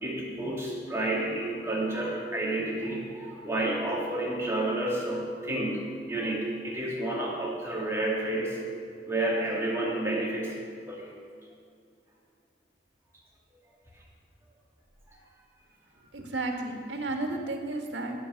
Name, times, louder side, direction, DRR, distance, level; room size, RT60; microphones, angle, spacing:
voice 1, 0.0-8.6 9.1-10.5 10.9-11.0, right 1 dB, 15° right, -4 dB, 2.4 m, -30 dB
voice 2, 16.1-18.2, right 2 dB, 90° right, 2 dB, 1.7 m, -33 dB
16.5 x 5.9 x 7.0 m, 2.3 s
head